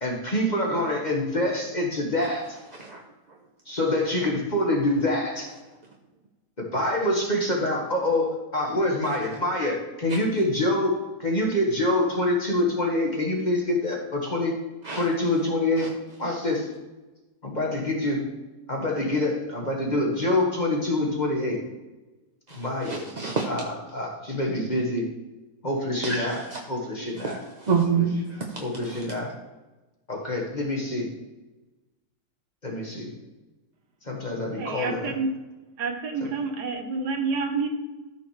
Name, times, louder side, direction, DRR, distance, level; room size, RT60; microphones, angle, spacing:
voice 1, 0.0-2.6 3.6-5.5 6.6-14.6 14.9-15.9 16.2-16.7 17.4-18.2 18.7-21.6 22.5-23.0 23.5-25.1 25.6-27.4 28.6-29.3 30.1-31.1 32.6-33.1 34.0-35.1, left 1 dB, 25° left, -1 dB, 1.5 m, -26 dB
voice 2, 22.5-23.5 26.0-26.6 27.2-29.0, right 5 dB, 40° right, -1 dB, 0.6 m, -28 dB
voice 3, 34.6-35.3 35.8-37.7, right 4 dB, 70° right, 5 dB, 1.5 m, -28 dB
14.0 x 6.3 x 3.2 m, 1.1 s
omnidirectional pair, 1.9 m